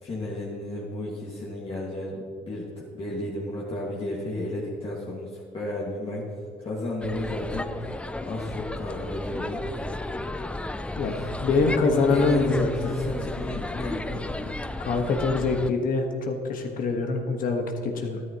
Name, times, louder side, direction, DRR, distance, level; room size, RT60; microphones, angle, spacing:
voice 1, 0.0-2.7 2.9-6.3 6.6-7.7 8.3-9.6 10.9-11.3 11.7-14.5, left 1 dB, 35° left, -5 dB, 1.8 m, -32 dB
sound 1, 7.0-15.7, left 2 dB, 5° left, 0.4 m, -34 dB
voice 2, 10.9-12.9 14.8-18.2, left 3 dB, 55° left, 3 dB, 1.3 m, -25 dB
13.0 x 11.0 x 2.9 m, 2.3 s
cardioid pair, 110°, 17 cm